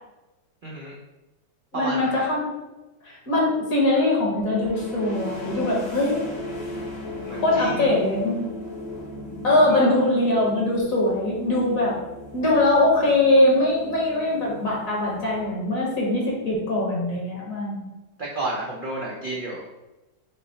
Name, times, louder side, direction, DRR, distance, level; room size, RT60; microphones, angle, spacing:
voice 1, 0.6-0.9 1.7-2.3 7.3-7.9 9.7-10.0 17.3-17.4 18.2-19.7, right 2 dB, 85° right, -4 dB, 0.4 m, -32 dB
voice 2, 1.7-2.5 3.0-6.2 7.3-8.4 9.4-12.0 12.3-17.9, left 1 dB, 55° left, -3 dB, 1.4 m, -22 dB
sound 1, 4.4-15.9, left 1 dB, 90° left, 2.3 m, -37 dB
5.7 x 2.0 x 3.8 m, 1.0 s
omnidirectional pair, 1.8 m